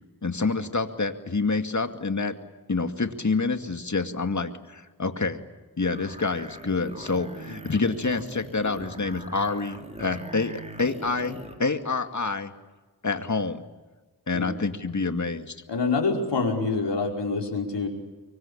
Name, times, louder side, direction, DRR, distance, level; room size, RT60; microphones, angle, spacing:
voice 1, 0.2-2.3 2.7-5.4 5.8-12.5 13.0-13.6 14.3-15.5, left 4 dB, 45° left, 7 dB, 2.3 m, -27 dB
sound 1, 5.8-11.6, right 1 dB, 15° right, 4.3 m, -41 dB
voice 2, 15.7-17.9, left 4 dB, 85° left, 1 dB, 5.2 m, -26 dB
25.0 x 24.0 x 8.8 m, 1.2 s
wide cardioid pair, 60°, 41 cm